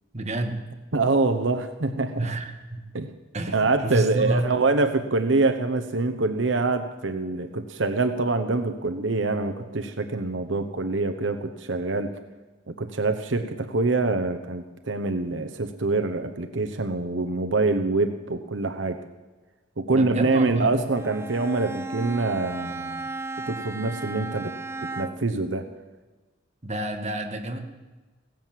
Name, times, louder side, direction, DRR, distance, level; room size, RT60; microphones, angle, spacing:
voice 1, 0.1-0.6 2.2-2.9 3.3-4.5 19.9-20.8 26.6-27.6, right 1 dB, 40° right, 3 dB, 1.7 m, -29 dB
voice 2, 0.9-2.2 2.9-3.1 3.5-12.1 12.7-19.0 19.8-23.1 23.5-24.5 24.8-25.7, right 3 dB, 85° right, 8 dB, 0.9 m, -25 dB
Bowed string instrument, 20.9-25.4, right 3 dB, 15° right, 0.5 m, -35 dB
17.0 x 10.5 x 7.6 m, 1.2 s
head